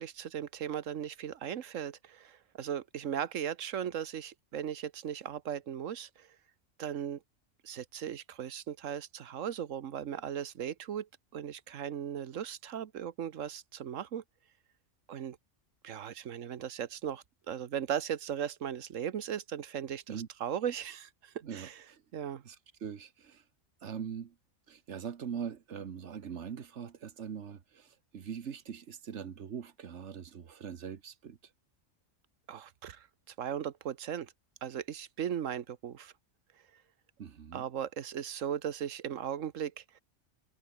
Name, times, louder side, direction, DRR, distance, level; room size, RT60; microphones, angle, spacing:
voice 1, 0.0-6.3 6.8-7.2 7.6-14.2 15.1-15.4 15.8-21.8 22.1-22.4 32.5-34.3 34.6-36.1 37.5-40.0, right 9 dB, 90° right, 1.3 m, -37 dB
voice 2, 21.4-22.0 22.4-22.6 22.8-23.4 23.8-24.3 24.7-31.4 37.2-37.6, right 7 dB, 65° right, 1.4 m, -42 dB
omnidirectional pair, 1.3 m